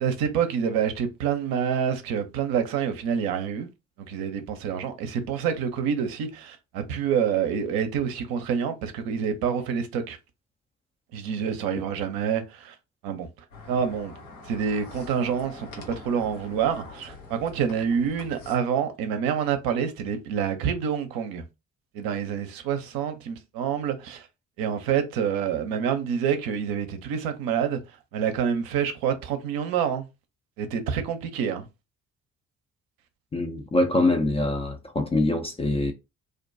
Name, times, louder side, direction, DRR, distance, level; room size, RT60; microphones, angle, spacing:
voice 1, 0.0-3.7 4.0-10.2 11.1-12.7 13.0-13.3 13.7-14.1 14.5-21.4 21.9-24.3 24.6-27.8 28.1-30.1 30.6-31.7, right 7 dB, 60° right, 0.6 m, -27 dB
sound 1, 13.5-18.6, left 3 dB, 85° left, 0.7 m, -44 dB
voice 2, 33.3-35.9, left 2 dB, 15° left, 0.3 m, -24 dB
2.4 x 2.2 x 2.5 m
figure-of-eight pair, 40°, 41 cm